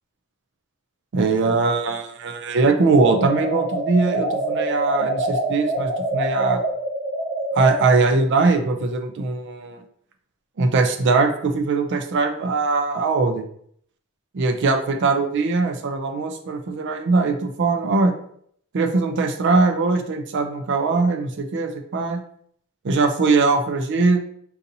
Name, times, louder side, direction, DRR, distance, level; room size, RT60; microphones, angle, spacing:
voice 1, 1.1-6.6 7.5-9.8 10.6-13.4 14.3-18.1 18.7-22.2 22.8-24.2, right 3 dB, 55° right, 6 dB, 0.4 m, -21 dB
sound 1, 3.0-7.8, right 1 dB, 80° right, 1.0 m, -25 dB
3.9 x 2.7 x 2.6 m, 0.66 s
head